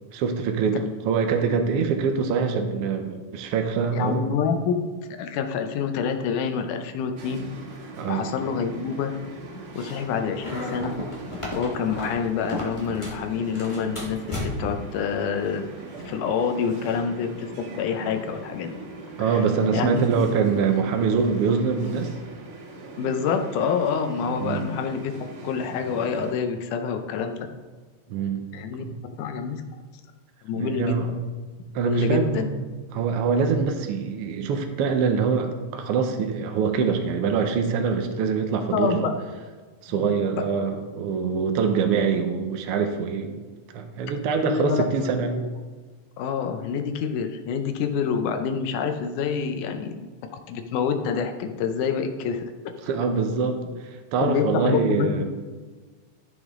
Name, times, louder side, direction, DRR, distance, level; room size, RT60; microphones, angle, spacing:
voice 1, 0.1-0.8 1.1-4.3 8.0-8.3 19.2-22.1 24.4-24.6 28.1-28.4 28.8-28.9 30.5-31.2 31.7-32.6 32.9-39.1 39.8-43.4 43.7-45.4 52.8-55.2, right 5 dB, 75° right, 5 dB, 1.3 m, -24 dB
voice 2, 3.9-4.8 5.2-7.5 8.1-9.1 9.8-10.9 11.5-15.7 16.0-17.5 17.8-18.7 19.2-19.4 19.7-20.5 23.0-25.1 25.4-27.5 28.5-28.8 29.2-29.6 30.4-31.0 31.8-32.5 38.7-39.1 39.9-40.1 44.5-45.5 46.2-50.1 50.5-52.5 54.2-55.2, left 6 dB, 85° left, 6 dB, 2.2 m, -27 dB
sound 1, 7.2-26.3, right 2 dB, 55° right, 2.0 m, -40 dB
sound 2, 10.4-13.2 13.5-14.8, left 1 dB, 35° left, 0.4 m, -33 dB
13.5 x 6.2 x 3.6 m, 1.4 s
omnidirectional pair, 3.6 m